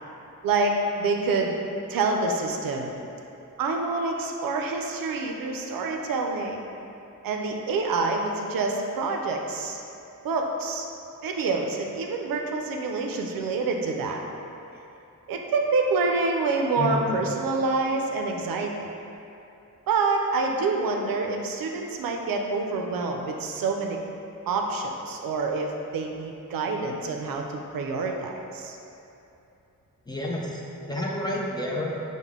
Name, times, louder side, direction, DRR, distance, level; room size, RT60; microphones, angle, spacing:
voice 1, 0.4-1.6 1.9-2.9 3.6-6.6 7.2-9.8 10.2-10.9 11.2-14.2 15.3-18.9 19.9-24.0 24.5-28.8, right 3 dB, 90° right, 2 dB, 0.5 m, -27 dB
voice 2, 16.8-17.2 30.1-31.9, left 1 dB, 15° left, -3 dB, 0.5 m, -30 dB
5.3 x 2.1 x 3.5 m, 2.8 s
wide cardioid pair, 90°, 33 cm